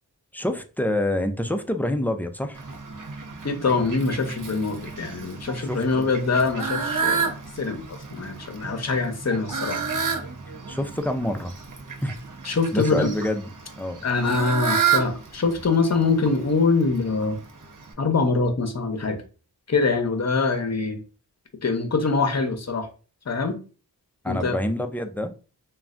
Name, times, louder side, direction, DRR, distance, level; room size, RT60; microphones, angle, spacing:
voice 1, 0.3-2.6 5.6-6.1 10.7-11.6 12.0-12.2 12.7-13.5 13.8-14.1 24.2-25.3, left 1 dB, 5° left, 0.4 m, -27 dB
Fowl, 2.5-17.9, right 6 dB, 50° right, 0.7 m, -31 dB
voice 2, 3.4-9.8 12.4-13.1 14.0-17.4 18.0-19.2 19.7-21.0 21.6-22.9 23.3-23.6 24.3-24.6, left 4 dB, 40° left, 0.7 m, -24 dB
3.1 x 2.3 x 2.4 m
cardioid pair, 40°, 40 cm